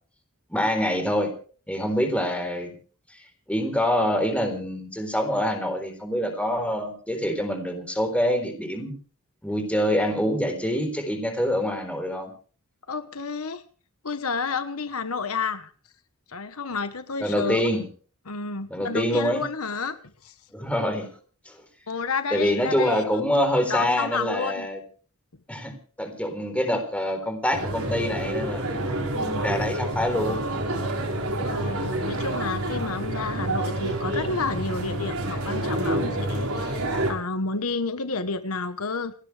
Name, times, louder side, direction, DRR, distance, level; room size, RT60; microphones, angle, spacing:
voice 1, 0.5-1.3 1.7-2.7 3.1-3.2 3.5-8.9 9.4-12.3 17.2-17.8 18.7-19.4 20.5-21.1 21.5-21.6 22.3-24.8 25.5-30.4 36.9-37.0, equal, 5° left, 6 dB, 4.0 m, -26 dB
voice 2, 12.9-13.6 14.0-15.7 16.3-17.7 18.3-20.0 20.2-20.3 21.9-23.0 23.7-24.7 31.4-39.1, left 4 dB, 80° left, 10 dB, 1.3 m, -30 dB
sound 1, 27.5-37.1, right 1 dB, 80° right, 4.7 m, -28 dB
30.0 x 10.0 x 3.4 m, 0.41 s
head